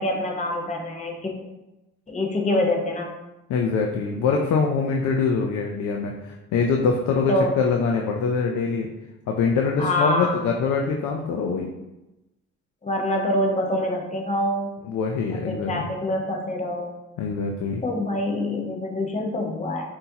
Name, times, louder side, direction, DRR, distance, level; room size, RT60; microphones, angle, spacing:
voice 1, 0.0-1.3 2.1-3.1 7.3-7.5 9.8-10.3 12.8-14.7 15.3-16.9 17.8-19.9, left 1 dB, 25° left, 1 dB, 0.9 m, -25 dB
voice 2, 3.5-8.9 9.3-11.7 14.9-15.9 17.2-17.8, left 5 dB, 75° left, 1 dB, 0.6 m, -24 dB
5.5 x 2.7 x 2.8 m, 0.99 s
cardioid pair, 90°, 30 cm